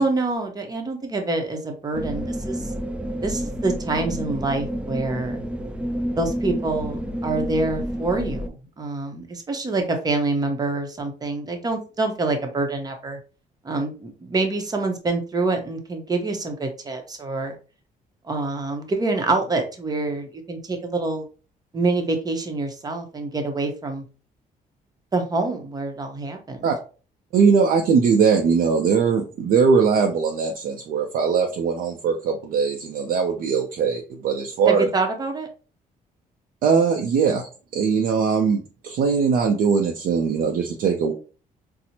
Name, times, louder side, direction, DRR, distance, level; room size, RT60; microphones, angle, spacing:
voice 1, 0.0-2.7 3.2-5.4 6.2-13.2 13.6-17.6 18.2-21.3 21.7-24.0 25.1-26.7 34.6-35.5, right 3 dB, 25° right, 4 dB, 0.8 m, -26 dB
sound 1, 1.9-8.5, equal, 5° right, 0.3 m, -29 dB
voice 2, 27.3-34.9 36.6-41.1, right 5 dB, 70° right, 2 dB, 0.5 m, -20 dB
4.2 x 2.0 x 2.7 m, 0.36 s
cardioid pair, 110°, 15 cm